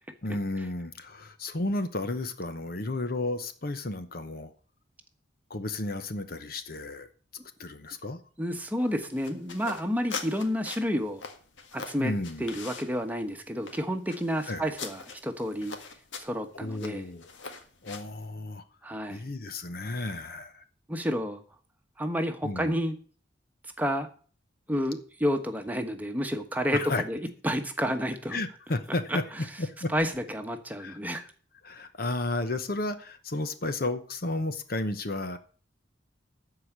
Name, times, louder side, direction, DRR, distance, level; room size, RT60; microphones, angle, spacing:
voice 1, 0.2-4.5 5.5-7.1 7.6-8.2 12.0-12.6 14.5-14.7 16.6-17.3 17.8-18.6 19.1-20.6 22.4-22.7 26.7-27.0 28.3-29.2 29.6-29.9 30.8-31.3 31.6-35.4, left 2 dB, 50° left, 0.9 m, -33 dB
voice 2, 8.4-11.2 11.7-12.1 12.4-15.7 16.2-17.0 18.8-19.2 20.9-21.4 22.0-23.0 23.8-24.1 24.7-27.2 27.4-28.4 29.1-29.2 29.9-31.2, equal, 10° right, 1.2 m, -30 dB
sound 1, 8.5-18.2, left 4 dB, 75° left, 1.8 m, -43 dB
13.5 x 4.9 x 8.0 m
head